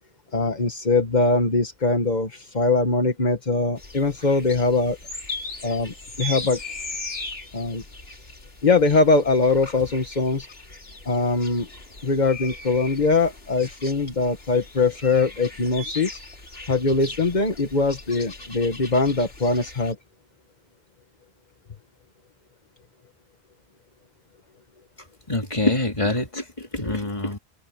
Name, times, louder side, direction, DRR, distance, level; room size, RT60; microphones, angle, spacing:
voice 1, 0.3-5.0 5.6-6.6 7.5-7.8 8.6-10.5 11.0-11.7 12.0-16.2 16.7-20.0, left 3 dB, 45° left, 1.7 m, -22 dB
sound 1, 3.8-19.9, left 2 dB, 75° left, 3.3 m, -39 dB
voice 2, 25.3-27.4, left 2 dB, 30° left, 3.4 m, -25 dB
open air
omnidirectional pair, 1.0 m